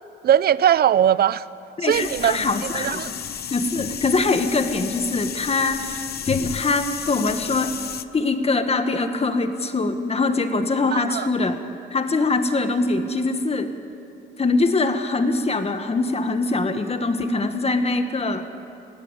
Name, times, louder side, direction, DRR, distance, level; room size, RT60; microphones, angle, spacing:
voice 1, 0.2-1.4 1.8-3.1 10.9-11.3, right 10 dB, 50° right, 18 dB, 0.6 m, -20 dB
voice 2, 1.8-3.0 3.5-7.7 8.1-11.6 11.9-13.7 14.4-18.4, left 3 dB, 30° left, 7 dB, 1.7 m, -23 dB
sound 1, 1.9-8.0, left 9 dB, 55° left, 0.8 m, -32 dB
19.5 x 16.0 x 8.3 m, 2.7 s
cardioid pair, 90°, 20 cm